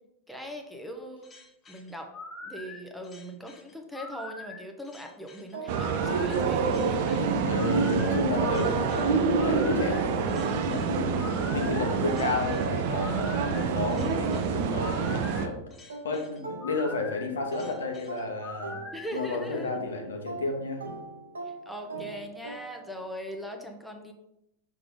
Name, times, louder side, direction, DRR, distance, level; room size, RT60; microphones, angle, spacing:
voice 1, 0.3-1.3 1.7-2.1 2.4-7.3 18.9-19.8 21.7-24.1, equal, ahead, 3 dB, 0.8 m, -40 dB
sound 1, 1.2-19.1, left 3 dB, 20° left, 1.1 m, -44 dB
sound 2, 5.5-8.4 8.8-17.1 17.5-23.0, right 3 dB, 70° right, 1.0 m, -42 dB
sound 3, 5.7-15.5, right 5 dB, 45° right, 0.5 m, -27 dB
voice 2, 7.4-11.2 11.5-15.6 16.0-18.8 19.1-20.8, left 3 dB, 70° left, 3 dB, 1.1 m, -32 dB
6.0 x 3.3 x 5.1 m, 0.86 s
figure-of-eight pair, 90°, 0 cm